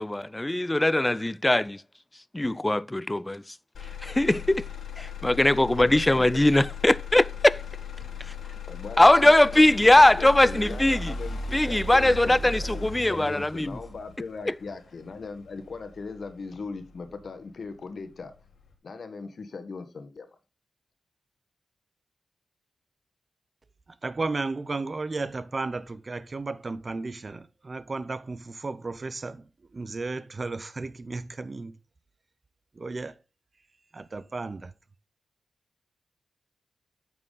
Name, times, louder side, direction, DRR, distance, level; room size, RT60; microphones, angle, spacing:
voice 1, 0.0-1.8 2.3-3.4 4.0-4.6 5.0-7.6 9.0-11.1 11.5-13.8 14.5-14.6, left 1 dB, 15° left, 0.4 m, -21 dB
Motor vehicle (road), 3.7-17.8 18.2-18.7, left 4 dB, 85° left, 1.8 m, -38 dB
voice 2, 5.2-6.2 8.7-9.7 10.0-18.3 18.8-20.3, left 4 dB, 65° left, 1.3 m, -39 dB
voice 3, 24.0-29.4 29.7-31.7 32.8-33.1 33.9-34.7, right 3 dB, 45° right, 0.7 m, -34 dB
8.9 x 5.9 x 3.9 m
cardioid pair, 65°, 0 cm